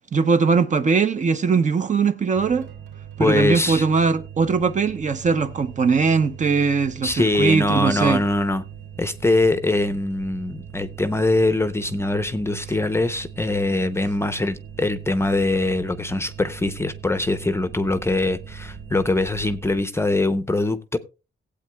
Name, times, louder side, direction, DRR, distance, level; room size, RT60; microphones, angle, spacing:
voice 1, 0.1-2.7 3.2-8.2, right 5 dB, 40° right, 0.7 m, -20 dB
sound 1, 2.4-19.8, right 8 dB, 65° right, 3.1 m, -40 dB
voice 2, 3.2-3.8 7.0-8.6 9.0-21.0, left 2 dB, 15° left, 0.6 m, -22 dB
18.5 x 8.4 x 2.3 m
cardioid pair, 135°, 20 cm